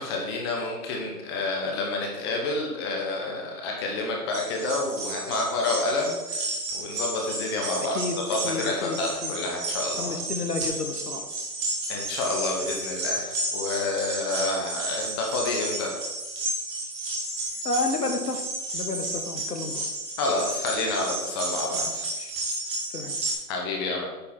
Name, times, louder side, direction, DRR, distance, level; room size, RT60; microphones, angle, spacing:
voice 1, 0.0-8.0 8.3-10.1 11.9-15.9 20.2-22.1 23.5-24.1, left 3 dB, 15° left, 0 dB, 0.8 m, -29 dB
sound 1, 4.3-23.3, right 2 dB, 15° right, 1.1 m, -32 dB
voice 2, 7.8-8.2 8.4-9.3 10.0-11.3 17.6-18.4 18.7-19.8 21.8-21.9 22.2-22.3 22.9-23.2, left 3 dB, 75° left, 4 dB, 1.7 m, -31 dB
8.7 x 3.8 x 6.0 m, 1.1 s
hypercardioid pair, 145°, 46 cm